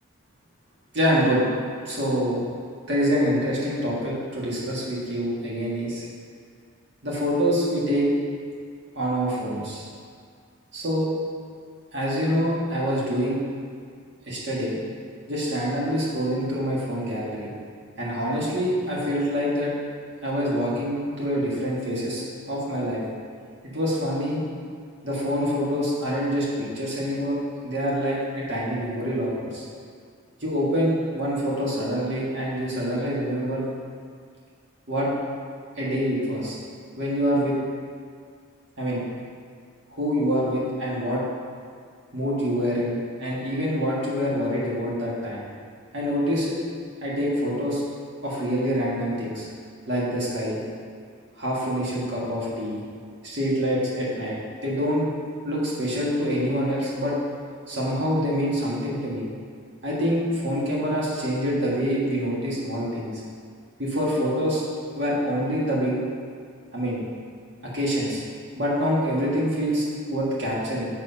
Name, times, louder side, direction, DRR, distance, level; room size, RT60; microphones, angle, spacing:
voice 1, 0.9-1.4 1.8-2.4 2.9-6.0 7.0-8.1 8.9-9.9 10.7-11.1 11.9-13.4 14.3-14.7 15.3-17.5 18.0-19.7 20.2-23.0 23.7-24.4 25.0-26.5 26.7-27.4 27.6-29.7 30.4-33.6 34.9-35.1 35.8-36.6 37.0-37.5 38.8-39.0 39.9-41.2 42.1-45.4 45.9-46.6 47.0-47.8 48.2-49.5 49.9-50.6 51.4-52.8 53.2-54.4 54.6-55.1 55.4-57.1 57.7-59.2 59.8-63.1 63.8-64.6 64.9-66.0 66.7-67.0 67.6-68.2 68.6-70.9, equal, 50° right, -6 dB, 1.7 m, -26 dB
7.8 x 4.3 x 5.5 m, 2.1 s
head